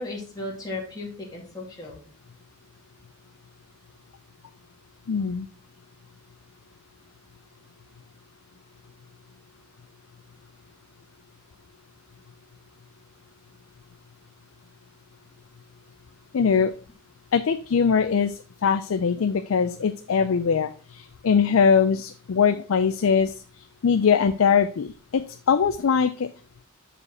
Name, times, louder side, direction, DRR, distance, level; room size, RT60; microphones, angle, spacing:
voice 1, 0.0-2.0, left 2 dB, 20° left, -3 dB, 2.1 m, -35 dB
voice 2, 5.1-5.5 16.3-16.7 17.3-26.3, left 6 dB, 75° left, 11 dB, 0.4 m, -22 dB
6.6 x 5.0 x 4.7 m, 0.37 s
head